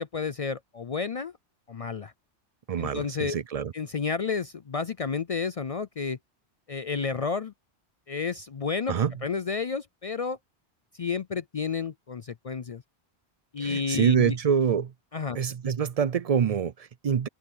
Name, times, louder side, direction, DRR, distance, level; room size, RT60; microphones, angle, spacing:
voice 1, 0.0-1.3 1.7-2.1 2.8-3.3 3.7-6.2 6.7-7.5 8.1-8.9 9.2-10.4 10.9-12.8 13.5-14.3 15.1-15.4, left 5 dB, 50° left, 0.4 m, -31 dB
voice 2, 2.7-3.7 8.9-9.1 13.6-14.9 15.3-17.3, right 7 dB, 55° right, 0.4 m, -25 dB
omnidirectional pair, 1.1 m